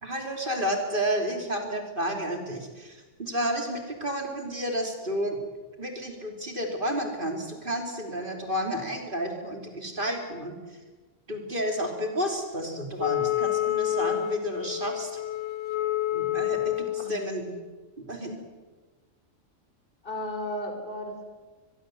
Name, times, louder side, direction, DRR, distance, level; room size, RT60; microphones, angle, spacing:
voice 1, 0.0-5.4 5.8-10.6 11.3-15.2 16.1-17.6 18.0-18.4, equal, 40° right, 3 dB, 3.5 m, -31 dB
Wind instrument woodwind instrument, 13.0-17.1, left 13 dB, 70° left, 1.6 m, -28 dB
voice 2, 20.0-21.3, left 1 dB, 40° left, 4 dB, 4.7 m, -34 dB
24.5 x 21.5 x 7.8 m, 1.3 s
omnidirectional pair, 1.4 m